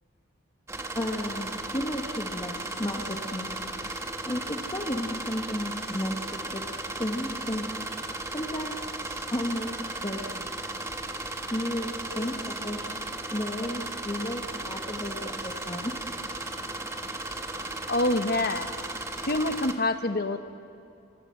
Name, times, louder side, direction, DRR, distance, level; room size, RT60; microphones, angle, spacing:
sound 1, 0.7-19.7, right 2 dB, 15° right, 1.2 m, -35 dB
voice 1, 0.9-3.5 4.3-6.6 7.0-7.7 8.3-8.9 9.3-9.7 10.0-10.4 11.5-11.9 12.1-12.9 13.3-15.9, left 1 dB, 20° left, 0 dB, 1.4 m, -33 dB
voice 2, 17.9-18.7 19.2-20.4, left 2 dB, 50° left, 9 dB, 1.0 m, -26 dB
24.5 x 23.5 x 7.7 m, 2.6 s
head